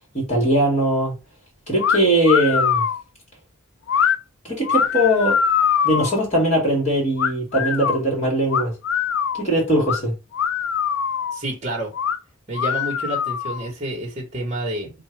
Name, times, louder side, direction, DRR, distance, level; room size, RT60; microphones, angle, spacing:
voice 1, 0.1-1.1 1.7-2.8 4.4-5.4 5.8-8.7 9.4-10.1, right 1 dB, 35° left, 2.4 m, -20 dB
sound 1, 1.8-2.0 2.3-3.0 3.9-4.2 4.6-6.2 7.2-8.0 8.5-9.4 9.9-10.0 10.3-11.4 11.9-12.2 12.5-13.7, left 7 dB, 75° left, 0.4 m, -22 dB
voice 2, 11.3-11.9 12.5-14.9, right 1 dB, 30° right, 1.3 m, -29 dB
3.8 x 2.6 x 4.6 m
head